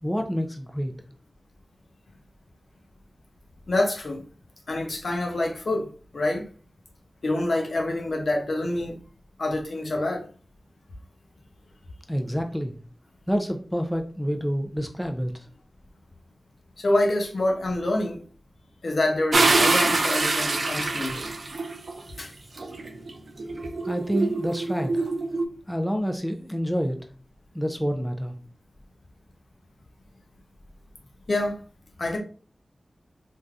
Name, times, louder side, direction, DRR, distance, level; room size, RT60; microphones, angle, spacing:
voice 1, 0.0-0.9 12.1-12.8 13.3-15.5 23.9-25.1 25.7-27.0 27.5-28.3, equal, ahead, 0.3 m, -28 dB
voice 2, 3.7-4.2 4.7-6.5 7.2-9.0 9.4-10.3 16.8-18.2 18.8-21.2 22.2-22.3 31.3-31.6 32.0-32.2, left 2 dB, 65° left, 0.7 m, -26 dB
sound 1, 19.3-21.9 22.6-25.4, right 3 dB, 65° right, 0.4 m, -25 dB
3.4 x 2.6 x 2.3 m
wide cardioid pair, 100°, 0 cm